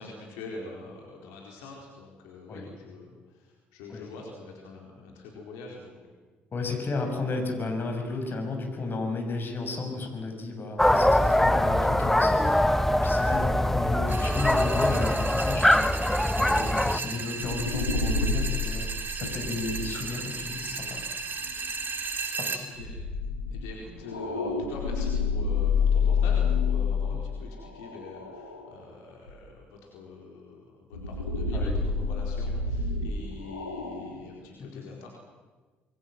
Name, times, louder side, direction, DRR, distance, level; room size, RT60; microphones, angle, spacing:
voice 1, 0.0-6.1 22.2-22.4 22.7-23.0 23.5-35.1, left 3 dB, 70° left, -1 dB, 4.4 m, -44 dB
voice 2, 6.5-15.9 16.3-21.0 22.2-22.7 27.1-27.2 31.5-31.7 34.6-34.8, left 3 dB, 40° left, 3 dB, 6.6 m, -33 dB
sound 1, 10.8-17.0, left 1 dB, 5° left, 1.1 m, -23 dB
sound 2, 14.1-22.6, right 4 dB, 35° right, 3.6 m, -35 dB
sound 3, 17.4-21.6 22.8-28.8 29.3-29.4 30.9-34.4, left 5 dB, 90° left, 2.1 m, -29 dB
27.0 x 22.5 x 7.7 m, 1.3 s
figure-of-eight pair, 50°, 6 cm